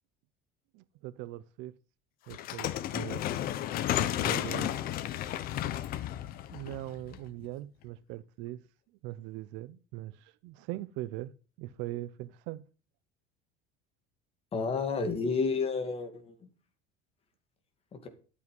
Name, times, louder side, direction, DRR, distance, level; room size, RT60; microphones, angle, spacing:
voice 1, 0.7-1.7 2.3-3.2 4.0-4.7 6.5-8.6 9.0-12.7, right 16 dB, 65° right, 0.7 m, -41 dB
sound 1, 2.3-7.4, left 12 dB, 45° left, 1.0 m, -33 dB
voice 2, 14.5-16.5 18.0-18.1, left 4 dB, 30° left, 2.4 m, -31 dB
12.0 x 8.5 x 5.4 m
cardioid pair, 155°, 20 cm